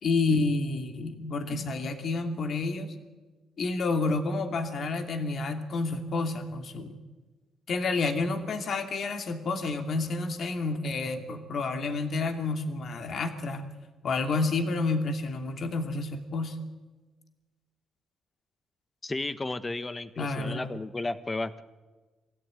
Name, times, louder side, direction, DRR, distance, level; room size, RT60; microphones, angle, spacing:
voice 1, 0.0-2.9 3.6-7.0 7.7-13.7 14.0-16.6 20.2-20.6, left 3 dB, 55° left, 5 dB, 2.6 m, -29 dB
voice 2, 19.0-21.6, left 2 dB, 20° left, 12 dB, 1.4 m, -33 dB
25.0 x 16.0 x 9.2 m, 1.3 s
cardioid pair, 90°, 0 cm